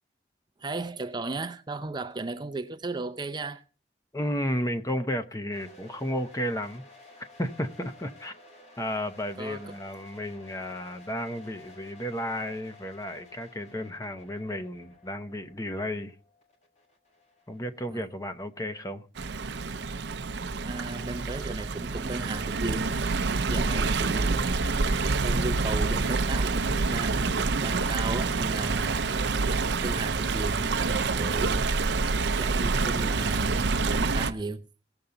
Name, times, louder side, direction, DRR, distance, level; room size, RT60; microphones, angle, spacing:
voice 1, 0.6-3.6 9.4-9.8 17.9-18.1 20.6-24.5 25.2-29.0 29.5-31.7 32.4-34.7, right 3 dB, 25° right, 0.5 m, -36 dB
voice 2, 4.1-6.8 7.2-8.3 8.8-16.1 17.5-19.0, equal, 20° left, 0.9 m, -33 dB
sound 1, 5.5-18.4, left 2 dB, 40° left, 2.8 m, -53 dB
Stream, 19.2-34.3, right 3 dB, 75° right, 0.6 m, -27 dB
18.0 x 7.0 x 3.8 m
head